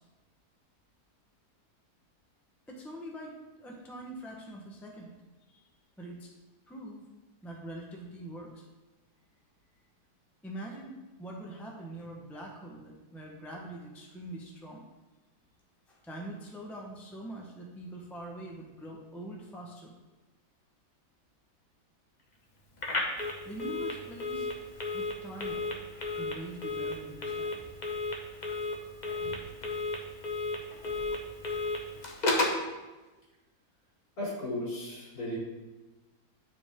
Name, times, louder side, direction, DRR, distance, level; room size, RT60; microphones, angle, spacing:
voice 1, 2.7-5.6 6.0-6.3 6.7-7.0 7.4-8.6 10.4-14.8 15.9-19.9 23.4-24.5 24.9-25.6 26.2-27.6, right 1 dB, ahead, -1 dB, 0.7 m, -44 dB
Telephone, 22.8-32.6, left 2 dB, 35° left, 0.9 m, -34 dB
voice 2, 34.2-35.4, left 1 dB, 65° left, -6 dB, 3.3 m, -36 dB
9.6 x 5.0 x 3.6 m, 1.2 s
omnidirectional pair, 1.7 m